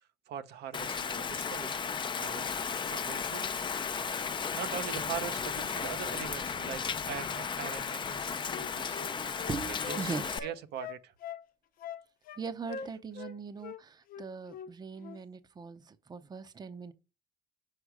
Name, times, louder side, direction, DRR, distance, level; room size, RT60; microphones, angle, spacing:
voice 1, 0.3-1.9 2.1-3.4 4.5-9.0 9.8-11.1, right 9 dB, 75° right, 0.8 m, -42 dB
Rain, 0.7-10.4, left 6 dB, 30° left, 0.5 m, -35 dB
Wind instrument woodwind instrument, 8.1-10.0 10.3-11.4 11.8-12.4 12.7-13.3 13.6-13.8 14.1-14.7 15.0-15.2, left 7 dB, 55° left, 0.8 m, -43 dB
voice 2, 9.1-10.5 12.4-16.9, right 4 dB, 25° right, 0.7 m, -40 dB
6.5 x 4.4 x 4.8 m
cardioid pair, 110°, 17 cm